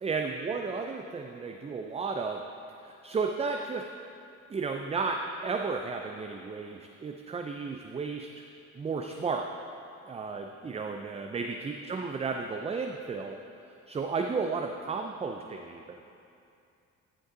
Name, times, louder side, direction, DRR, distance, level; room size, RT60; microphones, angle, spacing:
voice 1, 0.0-2.5 2.8-3.8 4.5-8.4 8.8-9.5 10.1-13.4 13.9-16.0, right 4 dB, 20° right, 4 dB, 0.4 m, -33 dB
13.0 x 5.3 x 3.8 m, 2.6 s
cardioid pair, 90°, 30 cm